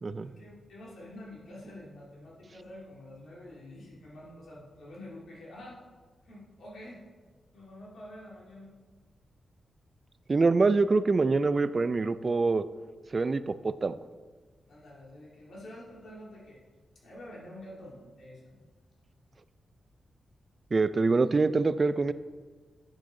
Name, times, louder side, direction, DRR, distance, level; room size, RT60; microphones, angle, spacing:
voice 1, 0.2-5.8 6.2-7.1 7.5-8.7 14.7-16.6 16.9-18.6, left 1 dB, 75° left, -5 dB, 2.7 m, -47 dB
voice 2, 10.3-12.6 13.1-13.9 20.7-22.1, right 3 dB, 40° right, 14 dB, 0.3 m, -25 dB
9.7 x 6.3 x 3.8 m, 1.4 s
cardioid pair, 75°, 0 cm